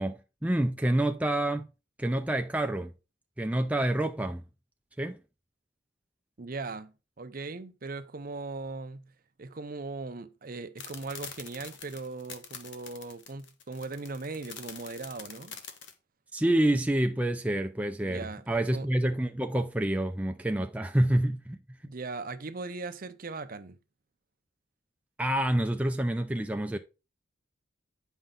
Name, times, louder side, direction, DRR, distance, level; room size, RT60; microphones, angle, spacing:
voice 1, 0.0-1.7 2.0-2.9 3.4-4.4 5.0-5.2 16.3-21.6 25.2-26.8, right 1 dB, 5° right, 0.4 m, -27 dB
voice 2, 6.4-9.1 9.4-15.6 18.0-18.9 21.8-23.8, right 3 dB, 45° right, 0.7 m, -39 dB
sound 1, 10.8-15.9, left 7 dB, 65° left, 1.2 m, -44 dB
8.9 x 5.5 x 3.8 m
head